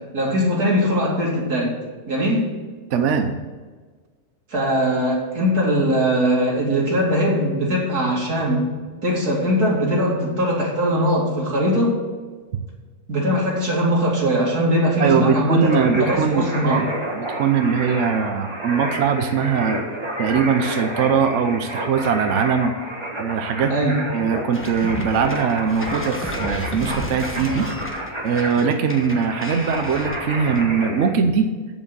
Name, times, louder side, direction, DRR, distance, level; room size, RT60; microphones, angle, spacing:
voice 1, 0.1-1.8 2.1-2.5 4.5-8.7 9.0-12.0 13.1-15.7 16.0-16.8 23.7-24.0, equal, 75° right, -4 dB, 3.3 m, -20 dB
voice 2, 2.9-3.4 15.0-19.8 20.2-22.7 23.1-23.7 24.1-27.7 28.2-31.5, right 6 dB, 55° right, 7 dB, 1.0 m, -21 dB
sound 1, 15.6-31.1, right 1 dB, 20° right, 1.5 m, -31 dB
sound 2, 24.5-30.8, left 1 dB, 10° left, 1.0 m, -33 dB
8.2 x 7.4 x 8.1 m, 1.4 s
omnidirectional pair, 1.7 m